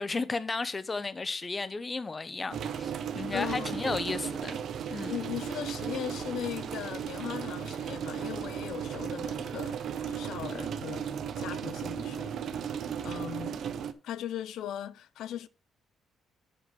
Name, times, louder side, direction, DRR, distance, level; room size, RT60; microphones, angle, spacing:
voice 1, 0.0-4.6 4.9-5.1, left 3 dB, 20° left, 0.6 m, -34 dB
sound 1, 2.5-13.9, right 8 dB, 60° right, 0.7 m, -35 dB
voice 2, 3.3-4.2 4.9-12.8 13.0-13.6 14.0-15.5, left 11 dB, 75° left, 0.4 m, -39 dB
8.2 x 4.7 x 6.0 m
cardioid pair, 130°, 0 cm